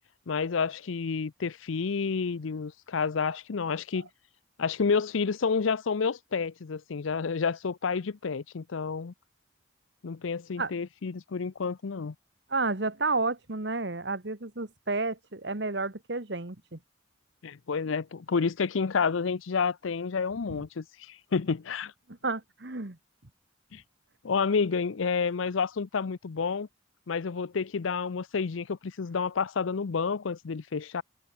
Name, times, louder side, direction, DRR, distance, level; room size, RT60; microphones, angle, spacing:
voice 1, 0.3-4.1 4.6-9.1 10.0-12.1 17.4-21.9 23.7-23.8 24.2-26.7 27.1-31.0, left 5 dB, 85° left, 0.6 m, -29 dB
voice 2, 12.5-16.8 20.5-20.6 22.1-23.0, right 3 dB, 60° right, 1.7 m, -31 dB
head